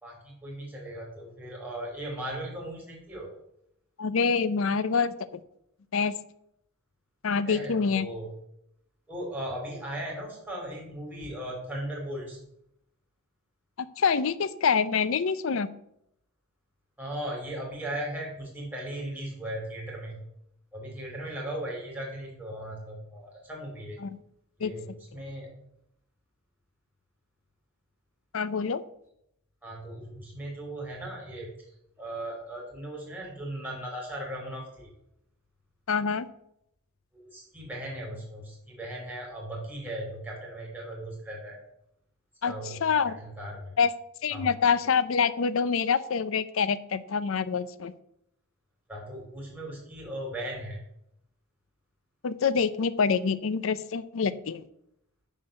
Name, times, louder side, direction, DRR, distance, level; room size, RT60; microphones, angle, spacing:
voice 1, 0.0-3.3 7.4-8.3 9.1-12.4 17.0-20.2 20.7-24.0 24.6-24.9 25.1-25.5 29.6-31.7 32.0-34.9 37.1-41.6 42.4-42.8 43.2-43.7 44.3-44.5 48.9-50.8, right 1 dB, 10° right, -3 dB, 3.2 m, -37 dB
voice 2, 4.0-5.4 5.9-6.1 7.2-8.1 13.8-15.7 24.0-24.2 24.6-24.7 25.1-25.2 28.3-28.8 35.9-36.3 42.4-43.2 43.8-43.9 44.2-47.9 52.2-54.6, left 6 dB, 70° left, 15 dB, 0.5 m, -26 dB
10.0 x 4.0 x 6.4 m, 0.78 s
head